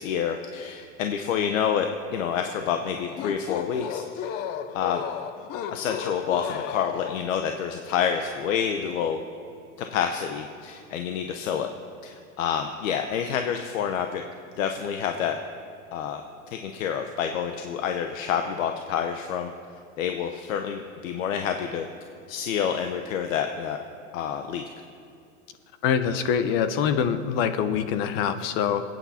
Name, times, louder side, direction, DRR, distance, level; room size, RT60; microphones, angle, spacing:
voice 1, 0.0-4.3 4.7-5.0 5.7-9.2 9.8-11.7 12.0-14.2 14.6-15.4 15.9-16.2 16.5-19.5 20.0-21.9 22.3-23.8 24.1-24.6, left 8 dB, 75° left, 5 dB, 1.1 m, -28 dB
sound 1, 3.0-7.5, left 9 dB, 25° left, 0.4 m, -34 dB
voice 2, 25.8-28.8, left 7 dB, 45° left, 10 dB, 1.0 m, -24 dB
27.0 x 9.0 x 4.4 m, 2.5 s
supercardioid pair, 150°, 40 cm